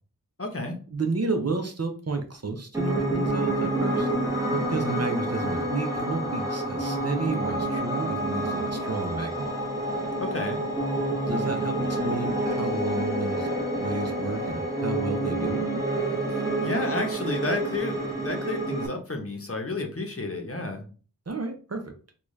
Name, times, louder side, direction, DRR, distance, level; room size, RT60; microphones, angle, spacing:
voice 1, 0.4-0.8 4.7-5.0 10.2-10.6 16.3-20.8, left 2 dB, 40° left, 3 dB, 0.8 m, -31 dB
voice 2, 0.9-4.1 4.5-9.5 11.3-15.6 21.3-21.8, right 3 dB, 50° right, 5 dB, 0.7 m, -31 dB
Piano, 2.7-18.9, right 1 dB, 10° right, 0.9 m, -28 dB
3.8 x 2.3 x 3.1 m, 0.38 s
wide cardioid pair, 50°, 34 cm